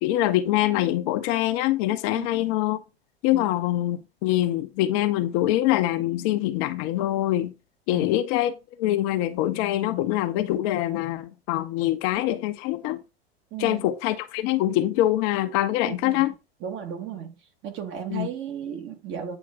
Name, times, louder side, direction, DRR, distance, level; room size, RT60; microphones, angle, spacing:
voice 1, 0.0-2.8 3.2-7.5 7.9-13.0 13.6-16.3 18.1-18.3, left 14 dB, 45° left, 0.8 m, -24 dB
voice 2, 2.1-2.6 3.3-3.8 7.9-8.1 13.5-13.9 15.9-16.3 16.6-17.4 17.6-19.4, right 8 dB, 35° right, 1.7 m, -35 dB
8.9 x 3.1 x 4.8 m
figure-of-eight pair, 85°, 32 cm